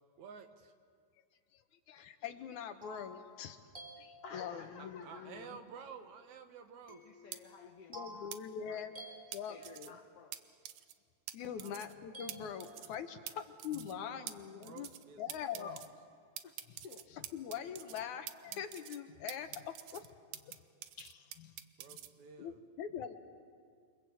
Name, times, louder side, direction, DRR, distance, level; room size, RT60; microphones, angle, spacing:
voice 1, 0.2-0.7 4.5-7.0 11.6-11.7 13.1-13.2 14.0-14.3 14.6-15.2 15.5-15.8 21.8-22.6, right 6 dB, 70° right, 7 dB, 2.6 m, -52 dB
voice 2, 1.9-3.6 4.0-5.6 7.9-8.9 9.3-10.0 11.3-14.9 15.2-15.8 17.3-20.1 20.3-20.6 21.0-21.5 22.4-23.2, left 8 dB, 75° left, 8 dB, 2.5 m, -43 dB
sound 1, 2.3-4.8 6.9-10.1 12.1-13.3, right 1 dB, 10° right, 3.5 m, -54 dB
voice 3, 4.2-5.5 7.0-8.9 9.3-10.4 16.4-16.6 16.8-17.1, left 5 dB, 60° left, 6 dB, 1.9 m, -53 dB
sound 2, 7.3-7.4 8.3-8.4 9.3-9.9 10.3-10.4 10.6-10.9 11.3-11.4 11.6-11.9 12.3-12.4 12.6-13.0 13.3-13.4 13.6-13.9 14.3-14.4 14.6-15.0 15.3-15.9 16.4-18.0 18.3-19.0 19.3-20.6 20.8-22.1, right 12 dB, 90° right, 2.4 m, -46 dB
28.5 x 24.0 x 8.0 m, 2.1 s
omnidirectional pair, 3.5 m